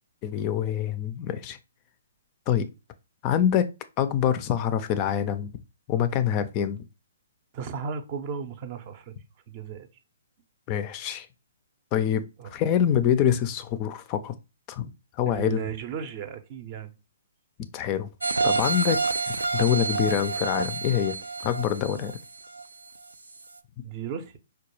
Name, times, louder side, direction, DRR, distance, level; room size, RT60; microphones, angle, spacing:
voice 1, 0.2-1.6 2.5-2.7 3.2-3.7 4.0-5.5 5.9-6.8 10.7-11.3 11.9-12.2 12.5-14.3 14.7-14.9 15.2-15.6 17.7-18.1 18.4-21.2 21.4-22.1, left 9 dB, 30° left, 0.3 m, -25 dB
voice 2, 7.5-9.1 9.5-9.9 12.4-12.6 15.3-16.9 23.8-24.3, right 7 dB, 40° right, 0.5 m, -35 dB
sound 1, 18.2-23.0 23.4-23.5, right 4 dB, 90° right, 0.3 m, -28 dB
4.5 x 2.2 x 3.0 m
hypercardioid pair, 130°, 0 cm